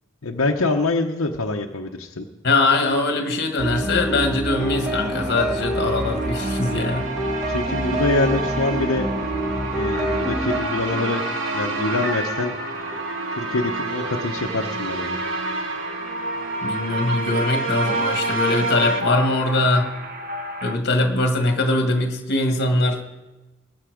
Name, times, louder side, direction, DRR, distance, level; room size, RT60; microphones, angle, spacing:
voice 1, 0.2-2.2 7.5-9.1 9.7-11.3 11.5-12.5 13.3-15.2, left 2 dB, 85° left, 2 dB, 0.9 m, -25 dB
voice 2, 2.4-7.1 16.6-19.9 20.6-23.0, left 2 dB, 50° left, 4 dB, 1.9 m, -22 dB
sound 1, 3.6-10.6, equal, 5° right, 2.2 m, -26 dB
sound 2, 4.5-20.8, right 2 dB, 45° right, 1.1 m, -34 dB
sound 3, 5.6-19.0, right 2 dB, 65° right, 1.5 m, -29 dB
21.0 x 8.9 x 5.1 m, 1.1 s
head